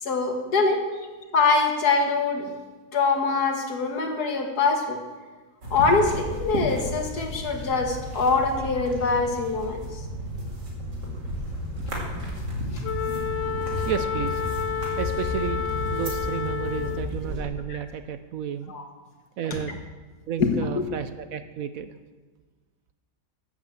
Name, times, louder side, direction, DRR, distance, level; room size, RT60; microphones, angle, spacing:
voice 1, 0.0-0.8 1.3-2.5 2.9-5.0 5.7-10.0 12.7-12.8 17.7-17.8 18.7-18.9 19.5-19.6 20.4-20.8, left 4 dB, 70° left, 4 dB, 2.0 m, -24 dB
sound 1, 5.6-17.4, equal, 85° right, 3.1 m, -33 dB
Wind instrument woodwind instrument, 12.8-17.2, left 8 dB, 90° left, 1.3 m, -30 dB
voice 2, 13.9-14.4 15.0-18.7 19.4-19.8 20.3-21.9, right 8 dB, 65° right, 10 dB, 0.9 m, -32 dB
13.0 x 8.5 x 7.6 m, 1.3 s
omnidirectional pair, 1.8 m